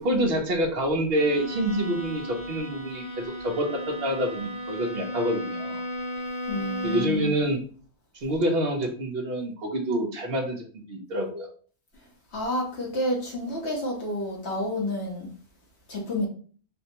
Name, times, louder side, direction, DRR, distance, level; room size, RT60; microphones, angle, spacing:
voice 1, 0.0-5.8 6.8-7.6 8.1-11.5, right 1 dB, 55° right, 3 dB, 0.9 m, -27 dB
Bowed string instrument, 1.1-7.3, equal, 35° left, 1.1 m, -34 dB
voice 2, 6.5-7.4 12.3-15.3 15.9-16.3, left 1 dB, 60° left, -2 dB, 1.3 m, -29 dB
4.3 x 2.1 x 2.8 m, 0.43 s
omnidirectional pair, 1.3 m